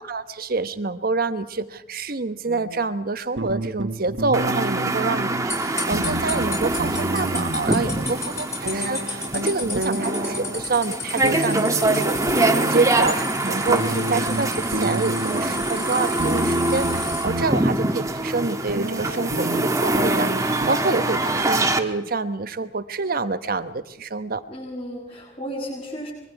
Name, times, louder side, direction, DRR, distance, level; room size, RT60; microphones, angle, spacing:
voice 1, 0.0-5.3 5.6-24.4, right 3 dB, 55° right, 11 dB, 1.2 m, -27 dB
sound 1, 2.5-2.8 3.4-5.5 5.8-8.1 8.7-10.6 11.2-13.1 13.7-15.7 16.2-17.5 18.1-18.2 18.7-20.7, right 1 dB, 90° right, 1.8 m, -30 dB
sound 2, 4.3-21.8, right 2 dB, 20° right, 1.5 m, -24 dB
voice 2, 4.7-5.2 7.8-8.4 9.3-9.7 12.4-12.9 15.3-15.7 20.6-21.4 24.5-26.1, equal, 30° left, -7 dB, 7.4 m, -36 dB
sound 3, 5.5-17.2, left 3 dB, 15° left, 5.1 m, -33 dB
25.0 x 23.0 x 4.8 m, 0.88 s
head